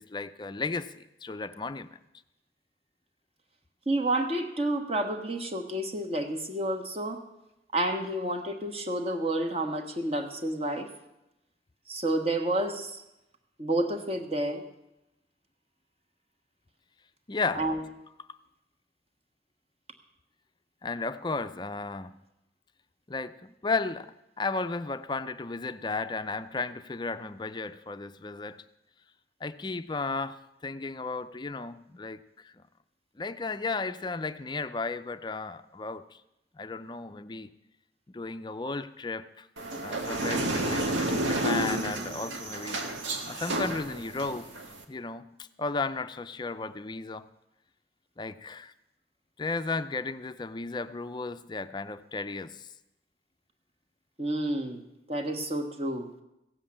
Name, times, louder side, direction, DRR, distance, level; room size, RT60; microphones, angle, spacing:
voice 1, 0.0-2.0 17.3-17.7 20.8-22.2 23.1-28.6 29.4-32.6 33.2-36.2 36.6-37.5 38.1-39.5 39.8-42.8 43.3-44.5 44.9-47.3 48.2-48.7 49.4-52.7, left 3 dB, 25° left, 0.4 m, -34 dB
voice 2, 3.9-7.2 7.7-10.9 11.9-13.0 13.6-14.6 17.5-17.8 54.2-54.8 55.1-56.1, right 1 dB, 30° right, 1.3 m, -30 dB
sound 1, 39.6-44.8, right 1 dB, 85° right, 1.8 m, -31 dB
16.0 x 7.7 x 8.6 m
head